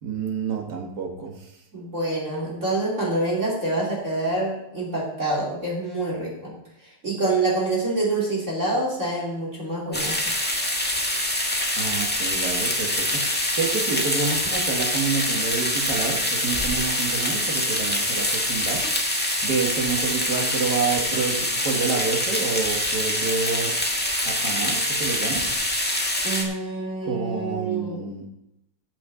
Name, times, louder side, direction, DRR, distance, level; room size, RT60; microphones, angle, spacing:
voice 1, 0.0-1.5 11.8-13.3 13.6-18.8 19.4-23.8 24.2-25.5 27.0-28.3, right 5 dB, 50° right, 2 dB, 2.2 m, -28 dB
voice 2, 1.7-6.5 6.8-10.2 26.2-28.0, right 2 dB, 35° right, -4 dB, 3.1 m, -26 dB
sound 1, 9.9-26.4, left 1 dB, 5° left, 1.4 m, -25 dB
14.0 x 7.5 x 4.0 m, 0.83 s
omnidirectional pair, 2.4 m